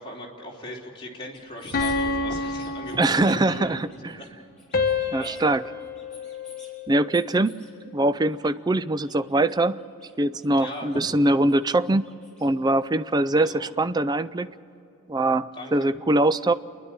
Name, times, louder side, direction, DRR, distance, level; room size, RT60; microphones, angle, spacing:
voice 1, 0.0-4.3 4.7-4.8 5.1-5.4 10.6-10.9 13.3-13.7 15.5-16.0, left 1 dB, 20° left, -3 dB, 3.2 m, -39 dB
sound 1, 1.3-2.0 2.3-3.1 3.5-4.3 4.6-5.5 5.8-6.7 7.1-7.7 8.3-8.5 8.8-10.1 10.4-12.5, left 2 dB, 5° left, 5.3 m, -52 dB
sound 2, 1.7-3.7 4.7-7.1, left 4 dB, 45° left, 1.2 m, -29 dB
Bass drum, 1.7-3.1, equal, 45° right, 5.5 m, -41 dB
voice 2, 3.0-3.8 4.0-4.1 5.1-5.6 6.9-7.6 7.9-9.8 10.2-12.1 12.4-14.5 15.1-16.5, right 2 dB, 20° right, 14 dB, 0.4 m, -22 dB
28.5 x 11.0 x 8.7 m, 2.9 s
head